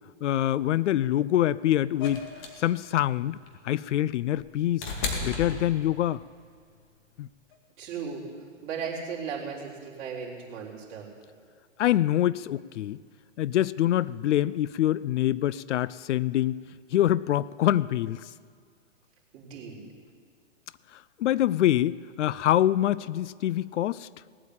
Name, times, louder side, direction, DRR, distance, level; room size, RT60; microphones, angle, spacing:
voice 1, 0.2-2.2 2.6-3.4 3.6-4.9 5.2-6.2 7.2-7.3 11.8-13.0 13.4-16.6 16.9-18.2 21.2-24.1, left 13 dB, 70° left, 20 dB, 0.5 m, -25 dB
sound 1, 2.0-6.3 7.5-7.6, left 4 dB, 40° left, 2.3 m, -35 dB
voice 2, 7.8-8.2 8.6-11.1 19.3-19.8, right 6 dB, 35° right, -4 dB, 3.9 m, -36 dB
19.0 x 8.7 x 8.6 m, 2.1 s
hypercardioid pair, 145°, 37 cm